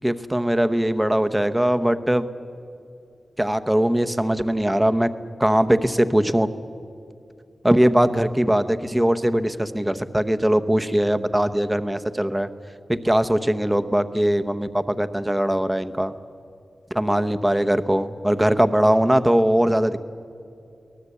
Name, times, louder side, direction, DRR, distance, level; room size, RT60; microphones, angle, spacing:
voice 1, 0.0-2.3 3.4-5.1 5.4-6.5 7.6-12.5 12.9-16.1 16.9-20.0, right 1 dB, 10° right, 10 dB, 0.9 m, -21 dB
23.5 x 18.5 x 8.2 m, 2.5 s
wide cardioid pair, 90°, 0 cm